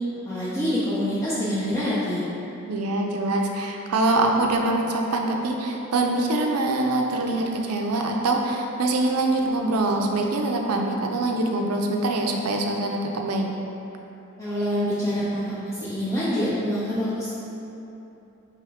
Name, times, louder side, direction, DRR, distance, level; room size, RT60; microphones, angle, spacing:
voice 1, 0.3-2.2 14.4-17.3, equal, 15° left, -12 dB, 0.6 m, -26 dB
voice 2, 2.7-13.5, right 2 dB, 85° right, 2 dB, 0.5 m, -24 dB
3.5 x 3.0 x 4.7 m, 2.9 s
head